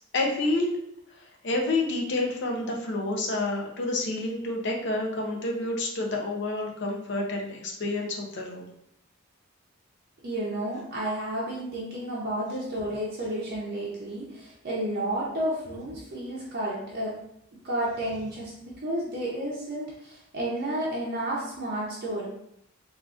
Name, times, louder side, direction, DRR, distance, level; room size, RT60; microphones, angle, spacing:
voice 1, 0.1-0.8 1.4-8.7, left 2 dB, 60° left, 0 dB, 0.6 m, -29 dB
voice 2, 10.2-17.2 17.6-22.3, right 1 dB, 50° right, -5 dB, 0.6 m, -31 dB
3.6 x 2.4 x 2.4 m, 0.75 s
head